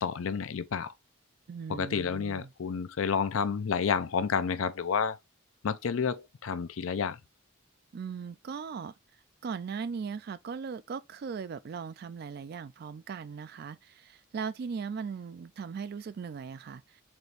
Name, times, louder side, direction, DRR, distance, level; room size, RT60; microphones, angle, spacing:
voice 1, 0.0-0.9 1.7-5.2 5.6-7.2, left 6 dB, 85° left, 0.5 m, -30 dB
voice 2, 1.5-2.5 7.9-8.9 9.4-17.0, right 6 dB, 50° right, 0.3 m, -38 dB
4.3 x 2.5 x 3.2 m
head